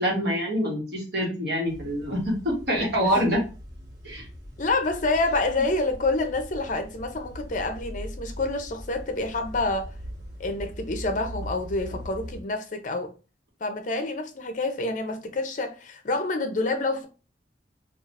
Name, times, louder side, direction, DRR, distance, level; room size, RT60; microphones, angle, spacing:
voice 1, 0.0-3.4 4.0-4.2, equal, 65° right, 1.2 m, -25 dB
sound 1, 1.6-12.4, equal, 90° right, 1.1 m, -41 dB
voice 2, 4.6-9.9 10.4-13.1 13.6-17.1, left 2 dB, 45° left, 0.6 m, -28 dB
3.6 x 2.4 x 2.4 m
head